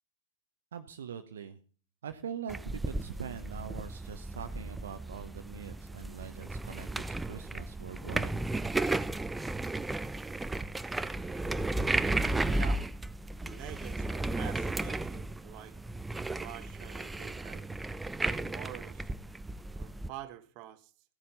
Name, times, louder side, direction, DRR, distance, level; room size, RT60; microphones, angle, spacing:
voice 1, 0.7-1.6 2.0-8.4, right 8 dB, 65° right, 0.9 m, -43 dB
sound 1, 2.5-20.1, right 2 dB, 10° right, 0.5 m, -34 dB
voice 2, 12.1-12.9 13.4-15.8 16.1-17.7 18.2-19.1 19.8-20.9, right 13 dB, 40° right, 1.4 m, -47 dB
16.0 x 9.6 x 4.0 m
figure-of-eight pair, 90°, 0 cm